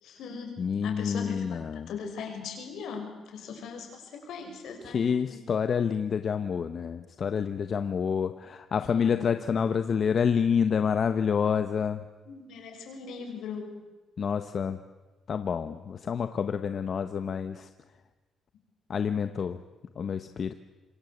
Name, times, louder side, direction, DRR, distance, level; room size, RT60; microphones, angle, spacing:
voice 1, 0.0-5.4 8.8-9.3 12.3-13.7, left 6 dB, 80° left, 4 dB, 6.5 m, -39 dB
voice 2, 0.6-1.9 4.8-12.0 14.2-14.8 15.3-17.7 18.9-19.6 20.0-20.5, left 7 dB, 50° left, 10 dB, 1.1 m, -28 dB
27.0 x 23.0 x 8.1 m, 1.2 s
cardioid pair, 90°, 0 cm